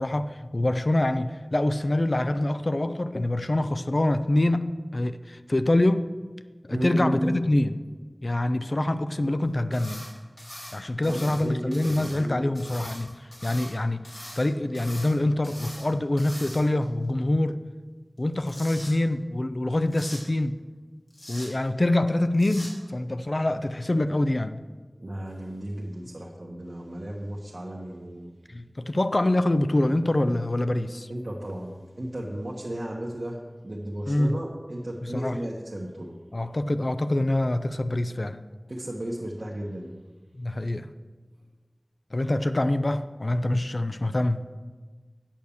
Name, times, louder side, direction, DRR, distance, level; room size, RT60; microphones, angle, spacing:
voice 1, 0.0-6.1 6.7-7.8 8.2-10.1 10.7-14.1 14.4-17.6 18.2-20.6 21.3-24.6 28.5-31.1 32.0-32.1 34.1-34.4 35.0-35.4 36.3-38.4 40.3-40.9 42.1-44.5, left 1 dB, 55° left, 11 dB, 0.5 m, -25 dB
voice 2, 6.7-7.3 11.0-12.5 25.0-28.3 31.1-33.4 33.6-36.1 38.7-39.9, right 1 dB, 65° right, -4 dB, 1.1 m, -34 dB
sound 1, 9.7-10.1 10.4-11.4 11.7-12.2 12.6-13.7 14.0-14.4 14.7-15.1 15.4-15.9 16.2-16.8 18.2-18.9 19.9-20.2 21.1-21.5 22.3-22.7, left 1 dB, 80° left, 3.2 m, -42 dB
8.7 x 6.5 x 7.0 m, 1.4 s
wide cardioid pair, 50°, 0 cm